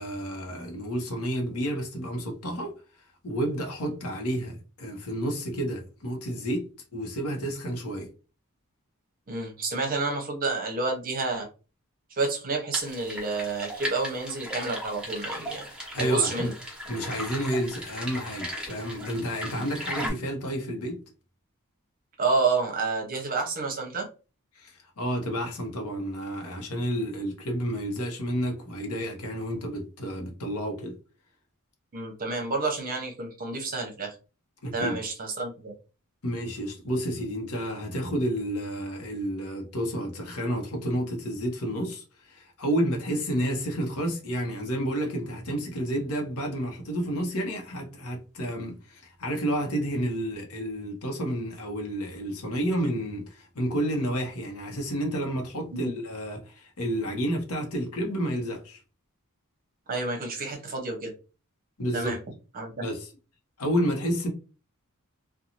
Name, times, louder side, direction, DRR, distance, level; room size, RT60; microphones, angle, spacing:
voice 1, 0.0-2.7 3.2-8.1 15.9-16.5 16.9-21.0 24.5-31.0 34.6-35.0 36.2-58.8 61.8-62.1 62.8-63.1 63.6-64.3, equal, 75° left, 0.9 m, -30 dB
voice 2, 9.3-11.5 12.1-15.7 16.0-16.5 19.5-19.6 22.2-24.1 31.9-34.1 34.7-35.7 55.7-56.0 59.9-61.1 61.9-62.2 62.5-62.8, right 3 dB, 40° right, 0.8 m, -29 dB
sound 1, 12.7-20.1, equal, 5° right, 0.9 m, -37 dB
2.6 x 2.3 x 2.9 m
head